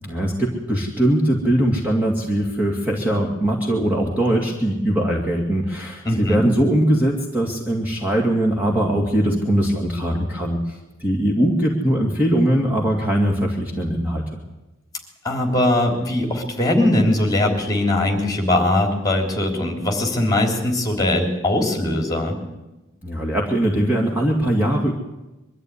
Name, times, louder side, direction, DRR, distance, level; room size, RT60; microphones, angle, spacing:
voice 1, 0.0-14.4 23.0-24.9, right 1 dB, 10° right, -1 dB, 2.3 m, -21 dB
voice 2, 6.1-6.4 15.2-22.3, left 1 dB, 15° left, 3 dB, 3.5 m, -20 dB
22.5 x 13.0 x 9.8 m, 1.0 s
head